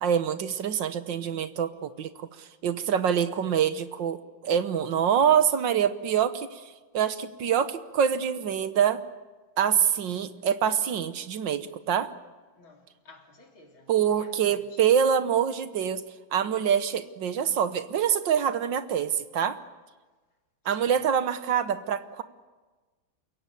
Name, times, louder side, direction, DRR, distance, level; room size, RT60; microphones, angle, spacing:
voice 1, 0.0-4.2 4.4-6.6 6.9-9.0 9.6-12.1 13.9-16.0 16.3-19.6 20.7-22.2, right 8 dB, 70° right, 1.7 m, -25 dB
voice 2, 12.5-14.8 20.6-21.0, left 2 dB, 80° left, 4.0 m, -54 dB
29.0 x 16.5 x 8.4 m
omnidirectional pair, 2.2 m